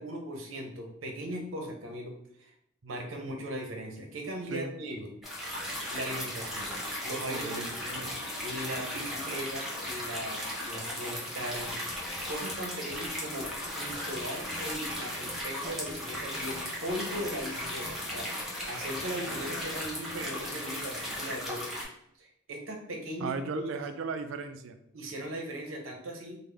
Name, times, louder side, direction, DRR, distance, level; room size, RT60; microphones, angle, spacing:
voice 1, 0.0-2.1 2.4-2.5 2.8-5.1 5.9-6.7 7.0-8.1 8.4-11.7 12.3-18.3 18.7-21.7 22.2-23.3 24.9-26.4, equal, 85° right, 2 dB, 0.7 m, -38 dB
sound 1, 5.2-21.8, left 1 dB, ahead, 0.8 m, -36 dB
voice 2, 7.3-7.8 23.2-24.8, right 4 dB, 65° right, 8 dB, 0.3 m, -36 dB
sound 2, 11.5-20.5, left 2 dB, 40° left, 0.5 m, -50 dB
3.5 x 2.1 x 3.3 m, 0.74 s
head